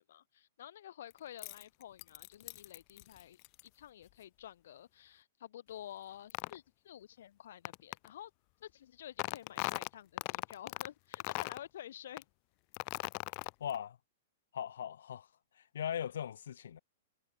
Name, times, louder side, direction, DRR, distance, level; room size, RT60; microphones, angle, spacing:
voice 1, 0.0-8.3 8.6-12.2, left 11 dB, 60° left, 6.9 m, -50 dB
sound 1, 1.1-3.6 6.3-6.6 7.6-8.1 9.2-10.9 11.1-11.7 12.2-12.3 12.7-13.8, left 40 dB or more, 30° left, 0.3 m, -39 dB
voice 2, 13.6-14.0 14.5-15.3 15.7-16.8, left 9 dB, 80° left, 0.7 m, -39 dB
hypercardioid pair, 170°, 0 cm